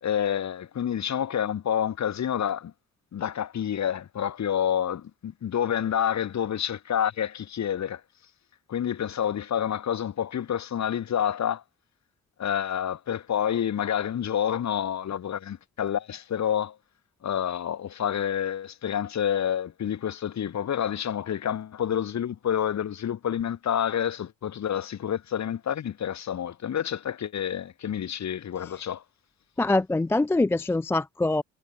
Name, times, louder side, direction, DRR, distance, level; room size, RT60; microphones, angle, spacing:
voice 1, 0.0-2.7 3.1-8.0 8.7-11.6 12.4-16.8 17.2-29.0, left 9 dB, 45° left, 3.5 m, -28 dB
voice 2, 29.6-31.4, left 2 dB, 5° left, 0.4 m, -24 dB
figure-of-eight pair, 50°, 39 cm